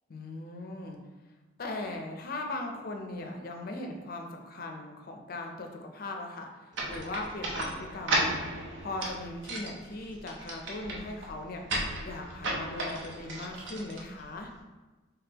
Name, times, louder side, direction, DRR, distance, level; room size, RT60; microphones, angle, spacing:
voice 1, 0.1-1.0 1.6-8.3 8.8-11.6 12.0-14.5, left 2 dB, 45° left, 3 dB, 0.5 m, -39 dB
sound 1, 6.7-14.6, right 1 dB, 60° right, 0.6 m, -35 dB
3.5 x 3.4 x 2.9 m, 1.2 s
head